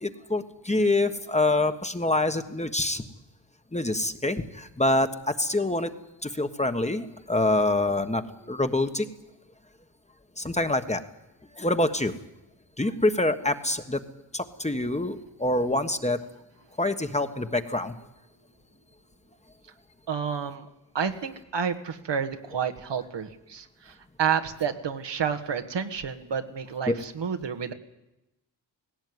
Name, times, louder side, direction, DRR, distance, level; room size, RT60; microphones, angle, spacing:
voice 1, 0.0-3.0 3.7-5.9 6.2-9.1 10.4-11.0 11.6-12.1 12.8-14.0 14.3-16.2 16.8-17.9 26.9-27.0, left 2 dB, 15° left, 8 dB, 1.5 m, -26 dB
voice 2, 20.1-20.7 20.9-27.7, right 7 dB, 70° right, 7 dB, 1.8 m, -30 dB
17.5 x 17.0 x 9.6 m, 0.92 s
cardioid pair, 75°, 44 cm